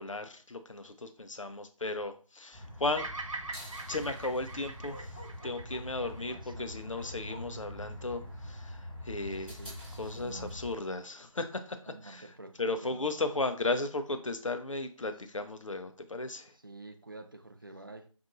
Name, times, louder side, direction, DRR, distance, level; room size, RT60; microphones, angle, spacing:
voice 1, 0.0-3.1 3.9-9.6 10.0-12.3 12.6-16.5, left 2 dB, 65° left, 0.6 m, -35 dB
sound 1, 2.5-10.7, equal, ahead, 1.2 m, -44 dB
Bird vocalization bird call bird song, 3.0-7.3, right 3 dB, 65° right, 0.8 m, -43 dB
Bark, 4.9-6.3 6.9-7.4, left 1 dB, 20° left, 0.5 m, -50 dB
voice 2, 5.9-7.1 9.3-10.6 11.9-13.2 16.6-18.1, right 2 dB, 40° right, 0.4 m, -49 dB
5.5 x 2.6 x 2.6 m
figure-of-eight pair, 165°, 18 cm